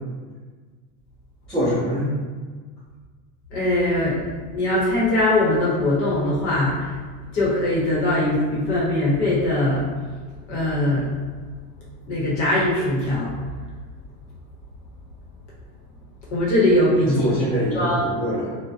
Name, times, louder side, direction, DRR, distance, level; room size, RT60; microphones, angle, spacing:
voice 1, 1.5-2.1 17.0-18.6, equal, ahead, -17 dB, 0.5 m, -24 dB
voice 2, 3.5-4.2 4.5-6.9 7.3-9.9 10.5-11.1 12.1-13.3 16.3-17.2 17.7-18.1, left 1 dB, 45° left, -6 dB, 0.8 m, -21 dB
2.4 x 2.1 x 2.5 m, 1.4 s
supercardioid pair, 175°, 48 cm